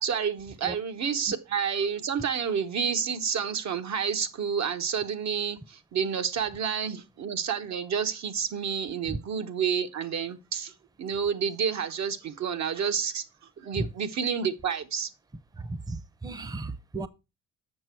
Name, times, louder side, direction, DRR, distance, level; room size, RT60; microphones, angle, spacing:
voice 1, 0.0-10.7 11.0-13.2 13.6-15.1, right 7 dB, 65° right, 1.1 m, -29 dB
voice 2, 15.6-17.1, right 2 dB, 15° right, 0.6 m, -34 dB
7.8 x 6.1 x 4.5 m
cardioid pair, 90°, 30 cm